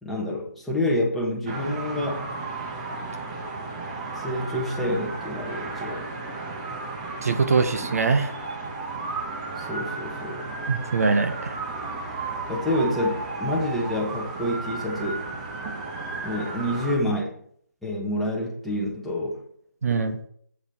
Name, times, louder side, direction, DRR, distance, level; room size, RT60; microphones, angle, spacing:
voice 1, 0.0-2.3 4.2-6.0 9.6-10.4 12.5-15.2 16.2-17.3 17.8-19.4, left 1 dB, ahead, -5 dB, 1.5 m, -28 dB
sound 1, 1.5-17.0, right 3 dB, 25° right, 1.5 m, -34 dB
voice 2, 7.2-8.3 10.7-11.5 19.8-20.2, right 4 dB, 60° right, 8 dB, 1.1 m, -23 dB
8.4 x 7.8 x 4.4 m, 0.63 s
figure-of-eight pair, 155°, 9 cm